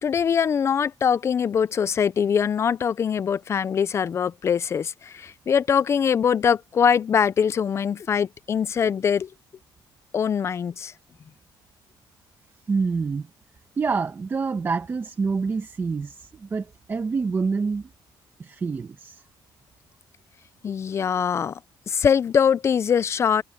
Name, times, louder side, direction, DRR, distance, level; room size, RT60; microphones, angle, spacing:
voice 1, 0.0-9.3 10.1-10.9 20.6-21.6 21.9-23.4, left 7 dB, 35° left, 0.5 m, -22 dB
voice 2, 12.7-13.3 13.8-17.9 18.4-19.2, right 4 dB, 25° right, 1.6 m, -27 dB
cardioid pair, 140°, 8 cm